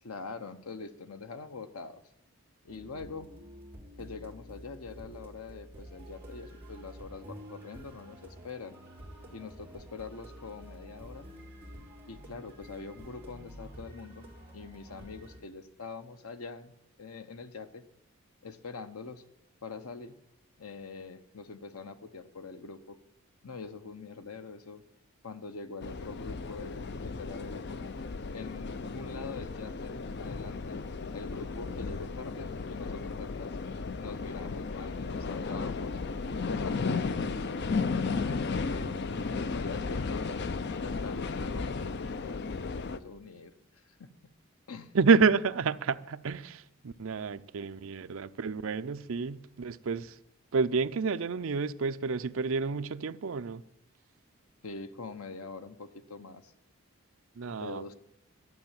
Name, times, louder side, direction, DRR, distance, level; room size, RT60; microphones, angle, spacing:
voice 1, 0.0-2.0 2.6-3.3 4.0-8.8 9.3-11.3 12.1-14.3 14.5-16.7 17.0-17.8 18.4-19.2 19.6-20.2 20.6-23.0 23.4-24.8 25.2-27.9 28.3-30.8 31.1-33.6 34.0-36.0 36.5-39.1 39.5-40.4 40.6-41.7 42.2-44.1 44.7-44.9 54.6-56.5 57.5-57.9, left 4 dB, 80° left, 0.9 m, -44 dB
sound 1, 2.7-15.4, equal, 10° right, 3.2 m, -49 dB
sound 2, 25.8-43.0, left 4 dB, 50° left, 0.5 m, -34 dB
voice 2, 44.9-50.2 50.5-53.6 57.4-57.9, right 5 dB, 65° right, 0.5 m, -29 dB
12.0 x 7.6 x 8.9 m
head